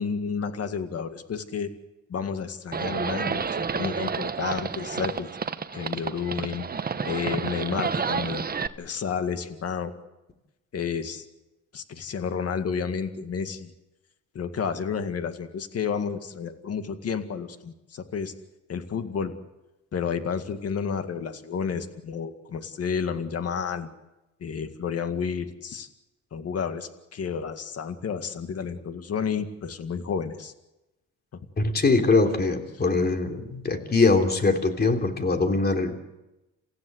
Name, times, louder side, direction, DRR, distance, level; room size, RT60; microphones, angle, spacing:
voice 1, 0.0-1.7 2.1-5.4 5.7-6.7 7.0-8.5 8.8-9.9 10.7-11.3 11.7-13.7 14.3-18.3 18.7-19.3 19.9-23.9 24.4-25.9 26.3-30.5 31.3-31.4, left 6 dB, 55° left, 9 dB, 2.1 m, -31 dB
Livestock farm animals working animals, 2.7-8.7, right 5 dB, 30° right, 1.1 m, -30 dB
voice 2, 31.6-36.0, left 3 dB, 30° left, 5 dB, 3.3 m, -22 dB
28.5 x 15.5 x 8.0 m, 0.98 s
cardioid pair, 90°, 30 cm